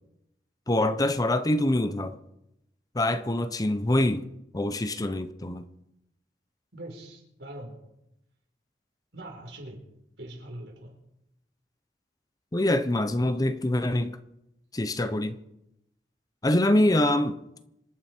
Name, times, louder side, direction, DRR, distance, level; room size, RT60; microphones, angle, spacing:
voice 1, 0.7-2.2 2.9-4.3 4.5-5.7 12.5-14.2 14.7-15.4 16.4-17.4, left 1 dB, 20° left, 0.7 m, -25 dB
voice 2, 6.7-7.7 9.1-9.8 10.2-10.9, right 1 dB, 75° right, 4.1 m, -42 dB
26.5 x 9.4 x 4.4 m
head